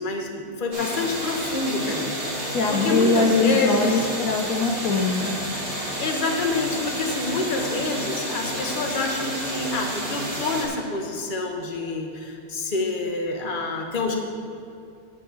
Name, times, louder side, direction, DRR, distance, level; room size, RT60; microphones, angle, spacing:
voice 1, 0.0-2.4 2.7-4.1 6.0-14.1, left 3 dB, 35° left, 2 dB, 1.1 m, -27 dB
sound 1, 0.7-10.7, equal, 35° right, 2.2 m, -30 dB
voice 2, 2.5-5.4, left 3 dB, 65° left, 0 dB, 1.2 m, -22 dB
9.5 x 4.6 x 7.8 m, 2.7 s
omnidirectional pair, 1.7 m